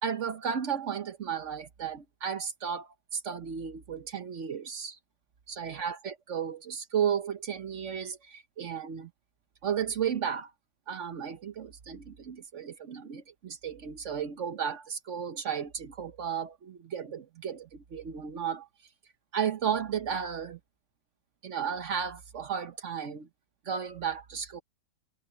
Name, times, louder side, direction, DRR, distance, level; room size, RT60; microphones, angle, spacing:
voice 1, 0.0-5.0 5.5-9.1 9.6-10.5 10.9-18.7 19.3-20.6 21.4-23.3 23.6-24.6, right 7 dB, 50° right, 1.0 m, -34 dB
omnidirectional pair, 2.0 m